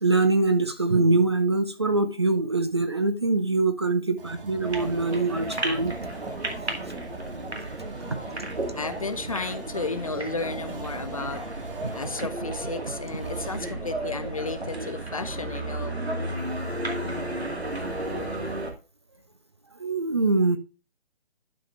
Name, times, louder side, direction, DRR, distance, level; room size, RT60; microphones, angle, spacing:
voice 1, 0.0-5.9 19.8-20.6, right 3 dB, 25° right, 0.5 m, -23 dB
sound 1, 4.2-13.6, right 4 dB, 55° right, 1.1 m, -44 dB
sound 2, 4.6-18.7, right 1 dB, 80° right, 2.3 m, -33 dB
voice 2, 7.5-16.0, left 3 dB, 35° left, 0.5 m, -34 dB
11.0 x 4.9 x 3.1 m
figure-of-eight pair, 145°, 32 cm